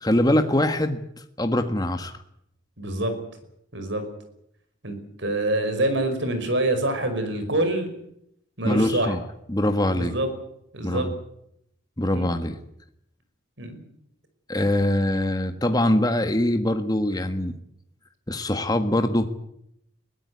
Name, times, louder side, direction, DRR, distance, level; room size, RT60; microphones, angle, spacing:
voice 1, 0.0-1.0 1.4-2.2 8.6-9.2 9.5-10.2 10.8-11.1 12.0-12.6 14.5-17.5 18.3-19.3, left 1 dB, 20° left, 7 dB, 1.6 m, -23 dB
voice 2, 2.8-3.1 3.7-4.0 4.8-7.9 8.6-9.1 9.9-10.3 10.7-11.1 12.1-12.3 13.6-13.8, right 1 dB, 60° right, 9 dB, 5.4 m, -25 dB
22.0 x 17.0 x 9.7 m, 0.76 s
head